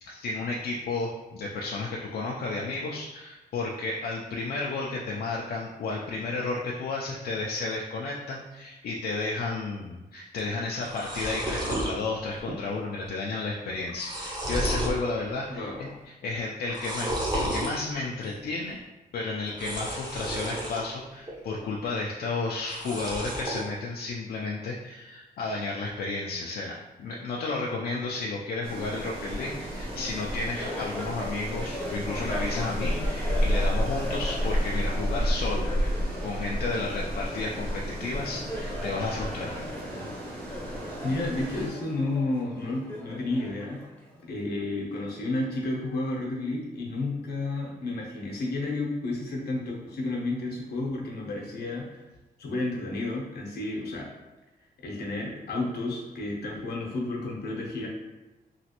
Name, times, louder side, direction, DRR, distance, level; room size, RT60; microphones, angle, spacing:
voice 1, 0.0-15.7 16.2-18.8 19.1-35.7 36.2-39.6, left 3 dB, 70° left, -2 dB, 0.4 m, -32 dB
sound 1, 10.4-10.5 10.7-11.9 12.4-12.8 13.0-13.1 13.7-15.0 15.4-15.9 16.6-17.7 19.5-20.8 21.3-21.9 22.6-23.6, right 1 dB, 25° right, 0.7 m, -32 dB
voice 2, 15.5-15.9 41.0-43.8 44.3-52.0 52.4-54.1 54.8-57.9, left 2 dB, 90° left, -2 dB, 0.8 m, -31 dB
sound 2, 28.6-41.7, equal, 75° right, 0.9 m, -31 dB
Laughter, 29.4-44.4, left 1 dB, 10° left, 0.6 m, -40 dB
3.0 x 2.5 x 2.8 m, 1.1 s
wide cardioid pair, 125°, 16 cm